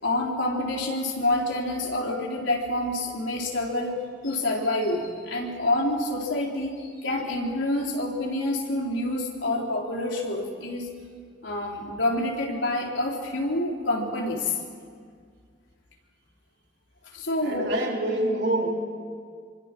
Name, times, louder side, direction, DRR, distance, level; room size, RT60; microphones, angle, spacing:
voice 1, 0.0-4.0 4.2-10.9 11.4-14.5 17.1-17.7, left 1 dB, 90° left, 0 dB, 4.0 m, -27 dB
voice 2, 17.4-18.7, right 1 dB, 60° right, -1 dB, 4.1 m, -26 dB
27.0 x 24.5 x 6.2 m, 2.1 s
head